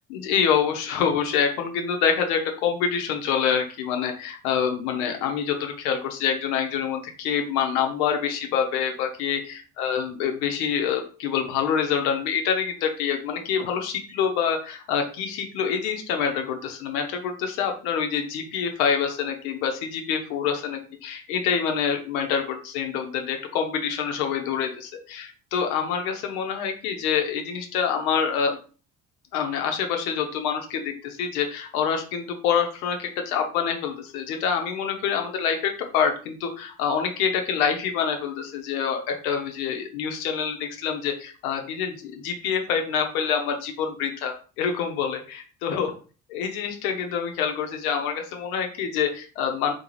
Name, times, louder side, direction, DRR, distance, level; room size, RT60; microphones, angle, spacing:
voice 1, 0.1-28.6 29.3-45.9 46.3-49.7, left 7 dB, 75° left, 4 dB, 0.7 m, -26 dB
2.5 x 2.3 x 3.0 m, 0.37 s
hypercardioid pair, 55°, 44 cm